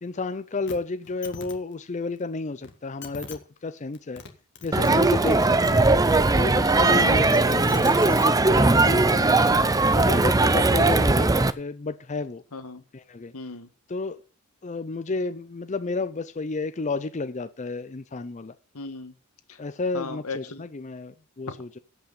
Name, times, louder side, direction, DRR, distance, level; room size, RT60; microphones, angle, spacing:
voice 1, 0.0-4.2 4.6-5.9 6.3-9.5 9.9-11.3 11.6-12.4 12.9-13.3 13.9-14.2 14.6-18.5 19.6-21.8, left 3 dB, 35° left, 0.5 m, -31 dB
sound 1, 0.7-0.8 1.0-1.5 2.6-2.7 3.0-3.4 4.0-4.3 4.6-5.7 7.1-8.3 9.3-9.4, left 4 dB, 55° left, 1.8 m, -40 dB
Crowd, 4.7-11.5, right 3 dB, 15° right, 0.5 m, -19 dB
voice 2, 7.0-7.3 12.5-12.8 13.3-13.7 18.7-19.1 19.5-19.6 19.9-20.6, left 3 dB, 90° left, 1.4 m, -36 dB
17.0 x 5.8 x 5.4 m
head